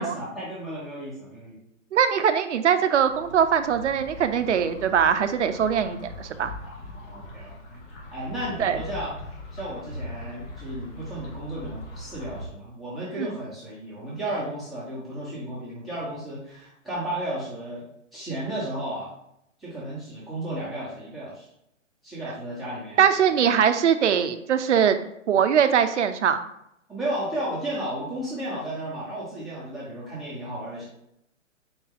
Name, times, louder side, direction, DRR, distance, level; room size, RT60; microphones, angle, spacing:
voice 1, 0.0-1.6 6.6-7.8 8.1-9.1 9.5-19.1 19.6-21.5 22.0-23.0 23.3-23.4 26.9-30.9, right 1 dB, ahead, -9 dB, 1.2 m, -34 dB
voice 2, 1.9-6.5 8.6-8.8 13.2-13.3 23.0-25.0 25.3-26.4, right 8 dB, 65° right, 9 dB, 0.5 m, -21 dB
sound 1, 2.9-12.5, left 1 dB, 45° left, 1.5 m, -41 dB
4.3 x 2.7 x 3.8 m, 0.76 s
figure-of-eight pair, 130°, 39 cm